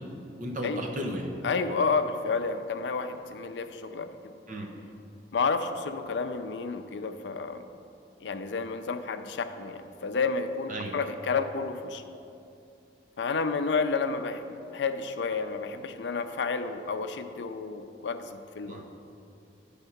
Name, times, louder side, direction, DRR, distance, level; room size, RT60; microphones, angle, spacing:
voice 1, 0.0-1.3 4.5-4.7 10.7-11.0 18.6-18.8, equal, 45° right, 1 dB, 0.9 m, -35 dB
voice 2, 1.4-4.1 5.3-7.6 8.2-12.0 13.2-18.8, left 4 dB, 70° left, 9 dB, 0.4 m, -30 dB
9.0 x 3.6 x 5.8 m, 2.6 s
head